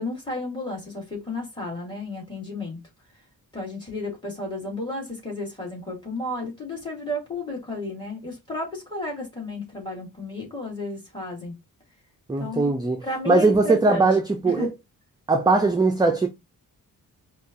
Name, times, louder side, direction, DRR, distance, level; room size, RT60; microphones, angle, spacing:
voice 1, 0.0-2.8 3.5-11.5 12.4-12.7 13.0-14.1 14.4-14.7, left 2 dB, 15° left, 2.3 m, -32 dB
voice 2, 12.3-14.7 15.3-16.3, right 3 dB, 10° right, 0.4 m, -20 dB
4.9 x 2.4 x 2.6 m
wide cardioid pair, 125°, 36 cm